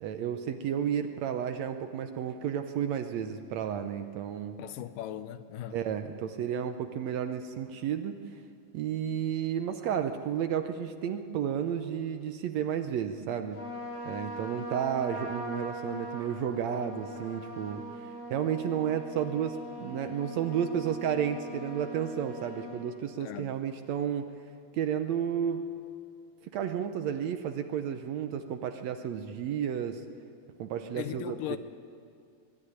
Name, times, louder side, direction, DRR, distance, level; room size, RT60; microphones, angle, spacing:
voice 1, 0.0-4.6 5.7-8.2 8.7-13.6 14.1-24.3 24.7-25.6 26.5-30.0 30.6-31.6, right 8 dB, 70° right, 1.7 m, -32 dB
voice 2, 4.6-5.8 23.2-23.6 31.0-31.6, left 12 dB, 85° left, 2.4 m, -38 dB
Trumpet, 13.5-22.9, equal, 30° left, 3.4 m, -41 dB
23.0 x 12.5 x 9.9 m
omnidirectional pair, 3.8 m